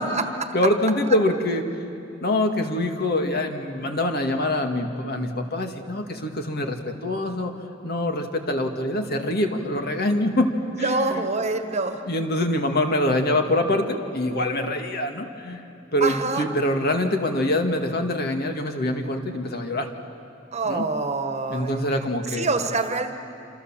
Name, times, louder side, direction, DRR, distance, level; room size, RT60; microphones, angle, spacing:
voice 1, 0.0-0.5 10.8-12.0 16.0-16.4 20.5-21.8 22.3-23.1, right 3 dB, 35° right, 7 dB, 1.5 m, -26 dB
voice 2, 0.5-1.7 2.2-7.5 7.8-10.5 10.8-11.3 12.1-15.6 15.9-19.9 20.6-20.9 21.5-22.5, left 1 dB, 55° left, 4 dB, 2.0 m, -24 dB
27.0 x 26.5 x 7.4 m, 2.7 s
head